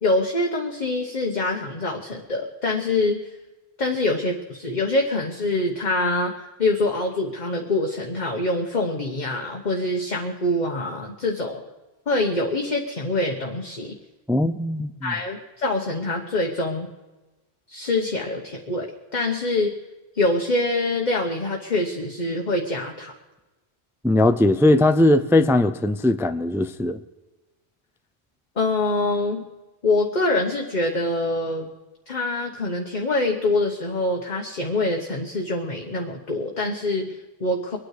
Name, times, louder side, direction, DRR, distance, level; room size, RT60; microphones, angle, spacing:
voice 1, 0.0-3.4 3.8-11.6 12.1-14.0 15.0-16.9 17.7-19.7 20.1-23.1 28.6-29.5 29.8-31.7 32.1-37.8, left 2 dB, 45° left, 1 dB, 1.3 m, -25 dB
voice 2, 14.3-15.1 24.0-27.0, left 1 dB, 5° right, 9 dB, 0.4 m, -19 dB
23.5 x 9.6 x 4.9 m, 1.1 s
omnidirectional pair, 1.1 m